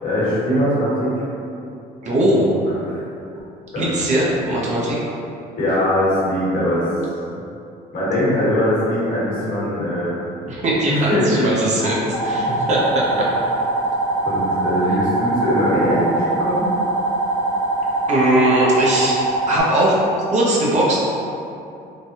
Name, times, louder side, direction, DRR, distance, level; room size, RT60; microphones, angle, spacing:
voice 1, 0.0-1.2 2.7-3.1 3.7-3.9 5.6-6.9 7.9-10.1 10.9-11.9 12.2-12.7 13.7-13.9 14.2-16.7, equal, 55° left, -8 dB, 1.3 m, -21 dB
voice 2, 2.0-2.5 3.8-5.0 10.5-12.0 12.2-13.6 18.1-19.2 19.5-20.0 20.3-21.0, right 1 dB, 45° right, -6 dB, 0.7 m, -19 dB
sound 1, 12.1-19.6, right 2 dB, 30° left, 0.8 m, -22 dB
3.2 x 2.2 x 2.7 m, 2.6 s
cardioid pair, 110°, 17 cm